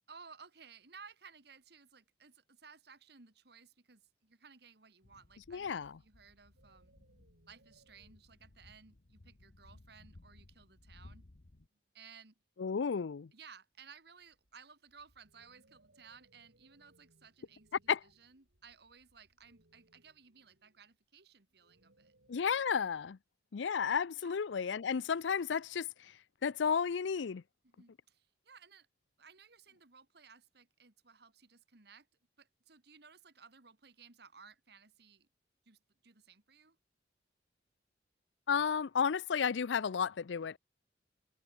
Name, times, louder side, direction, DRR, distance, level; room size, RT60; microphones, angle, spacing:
voice 1, 0.1-6.9 7.5-11.3 11.9-12.3 13.3-22.1 24.1-24.4 27.6-28.9 29.2-32.1 32.4-35.3 35.7-36.8, right 5 dB, 65° right, 2.0 m, -58 dB
sound 1, 5.0-11.7, left 1 dB, 55° left, 1.1 m, -60 dB
voice 2, 5.5-6.0 12.6-13.3 17.9-18.0 22.3-23.2 23.5-26.1 26.4-27.4 38.5-40.6, left 6 dB, 85° left, 0.5 m, -33 dB
sound 2, 6.6-8.5 11.7-11.8 13.9-22.4, right 1 dB, 85° right, 4.8 m, -70 dB
head